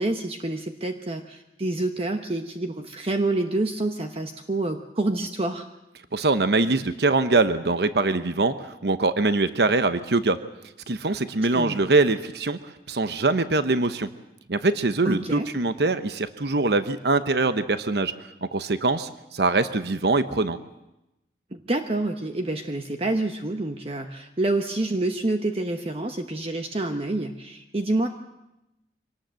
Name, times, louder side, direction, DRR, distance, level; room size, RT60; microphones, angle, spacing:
voice 1, 0.0-5.7 11.5-11.8 15.0-15.5 21.5-28.1, right 2 dB, 35° right, 6 dB, 1.0 m, -27 dB
voice 2, 6.1-10.4 10.9-12.6 12.9-14.1 14.5-18.1 18.4-20.6, right 3 dB, 65° right, 11 dB, 1.0 m, -23 dB
24.5 x 18.5 x 7.7 m, 0.91 s
head